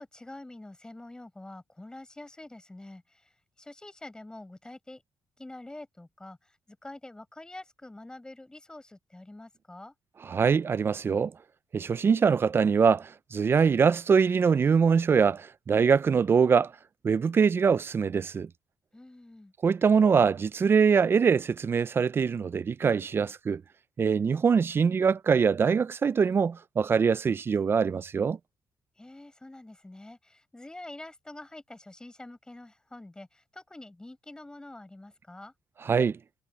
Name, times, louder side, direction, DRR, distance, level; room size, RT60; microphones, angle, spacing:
voice 1, 0.0-3.3 3.6-5.0 5.4-9.9 18.9-19.5 29.0-35.5, left 2 dB, 10° left, 5.4 m, -46 dB
voice 2, 10.3-11.3 11.7-16.7 17.0-18.5 19.6-23.6 24.0-28.4 35.8-36.2, right 6 dB, 30° right, 0.4 m, -23 dB
cardioid pair, 125°, 7 cm